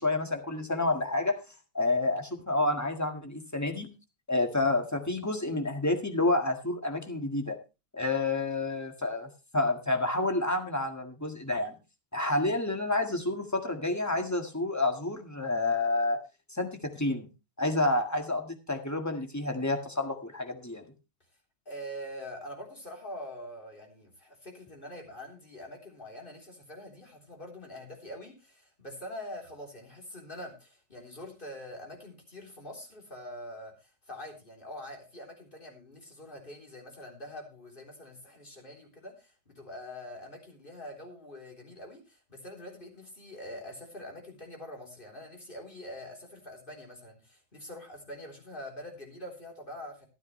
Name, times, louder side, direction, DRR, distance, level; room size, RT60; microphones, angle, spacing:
voice 1, 0.0-1.4 1.7-3.9 4.3-7.6 7.9-11.8 12.1-16.2 16.5-17.3 17.6-20.9, left 2 dB, 10° left, 5 dB, 1.6 m, -29 dB
voice 2, 21.7-50.0, left 1 dB, 30° left, 1 dB, 3.8 m, -44 dB
13.0 x 12.0 x 3.2 m, 0.29 s
omnidirectional pair, 1.9 m